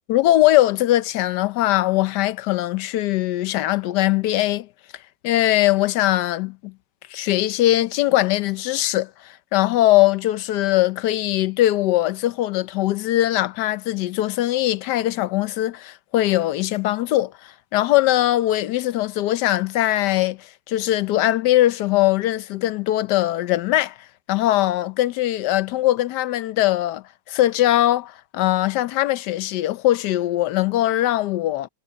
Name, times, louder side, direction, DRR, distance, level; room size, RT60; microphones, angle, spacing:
voice 1, 0.1-4.7 5.2-6.7 7.1-23.9 24.3-31.7, left 15 dB, 75° left, 1.2 m, -21 dB
omnidirectional pair, 1.9 m